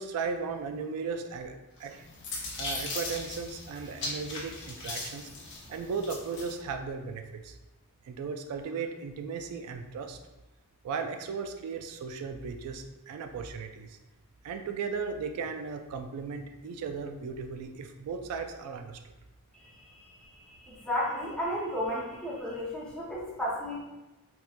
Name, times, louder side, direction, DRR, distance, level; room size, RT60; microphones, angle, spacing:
voice 1, 0.0-5.3 5.7-7.6 8.0-10.2 10.8-14.0 14.4-19.0, right 5 dB, 85° right, 9 dB, 0.3 m, -36 dB
sound 1, 1.8-6.6, left 2 dB, 55° left, 0.7 m, -38 dB
voice 2, 20.6-23.8, equal, 5° left, -7 dB, 0.8 m, -33 dB
4.2 x 2.1 x 2.4 m, 1.0 s
head